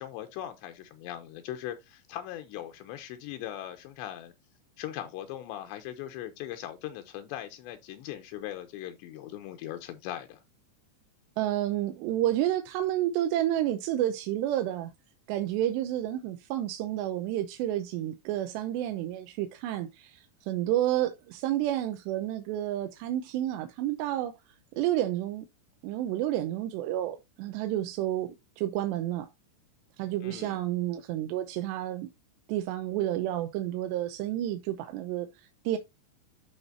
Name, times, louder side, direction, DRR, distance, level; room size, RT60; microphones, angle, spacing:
voice 1, 0.0-4.3 4.8-10.4 30.2-30.6, left 12 dB, 80° left, 3.0 m, -39 dB
voice 2, 11.4-14.9 15.3-24.3 24.8-25.5 25.8-29.3 30.0-32.1 32.5-35.8, right 13 dB, 80° right, 2.9 m, -30 dB
12.0 x 4.5 x 2.8 m
omnidirectional pair, 5.2 m